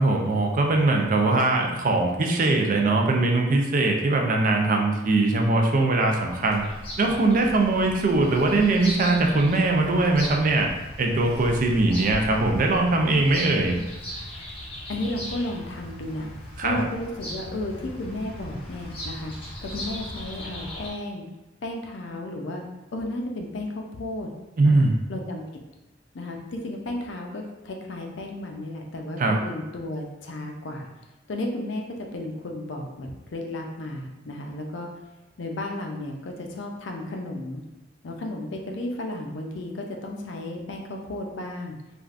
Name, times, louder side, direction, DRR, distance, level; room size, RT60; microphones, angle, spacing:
voice 1, 0.0-6.7 7.0-10.7 11.0-13.7 16.6-16.8 24.6-25.0 29.2-29.4, right 2 dB, 45° right, 2 dB, 0.4 m, -21 dB
Bird vocalization bird call bird song, 6.2-20.9, equal, 30° left, 0.8 m, -38 dB
voice 2, 14.9-16.3 16.6-21.3 21.6-22.6 22.9-24.3 24.6-24.8 25.1-25.4 26.1-30.9 31.3-34.9 35.4-37.6 38.0-41.8, left 1 dB, 65° left, 2 dB, 0.5 m, -33 dB
3.3 x 2.4 x 2.4 m, 1.0 s
head